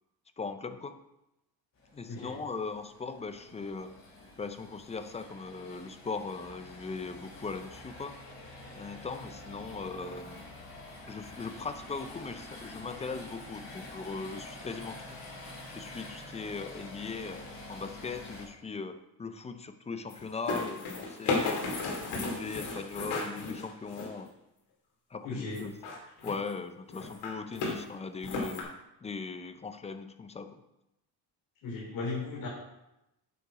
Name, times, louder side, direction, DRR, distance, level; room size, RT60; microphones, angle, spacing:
voice 1, 0.4-1.0 1.9-4.0 4.4-8.2 8.8-10.5 11.1-15.2 15.7-21.7 22.1-24.3 25.1-25.8 26.2-30.6, left 4 dB, 15° left, 9 dB, 0.4 m, -39 dB
sound 1, 1.8-18.5, left 2 dB, 45° left, 3.2 m, -47 dB
sound 2, 20.1-24.2 25.5-26.5 26.9-27.8 28.2-28.6, left 3 dB, 80° left, 2.6 m, -34 dB
voice 2, 25.2-25.6 31.6-32.5, left 3 dB, 60° left, -4 dB, 3.4 m, -36 dB
8.5 x 6.8 x 4.8 m, 0.89 s
cardioid pair, 150°, 38 cm